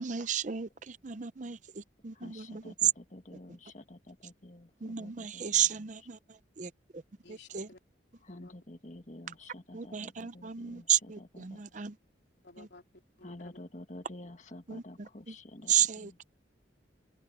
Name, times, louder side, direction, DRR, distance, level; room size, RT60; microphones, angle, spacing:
voice 1, 0.0-2.7 4.8-6.2 6.6-7.0 7.5-7.7 9.7-11.9 14.7-15.3 15.7-16.3, right 9 dB, 40° right, 0.5 m, -33 dB
voice 2, 2.1-6.1 8.2-11.6 13.2-16.2, left 1 dB, 40° left, 1.7 m, -50 dB
voice 3, 7.2-7.8 8.4-8.5 12.4-13.6, left 3 dB, 60° left, 3.2 m, -55 dB
head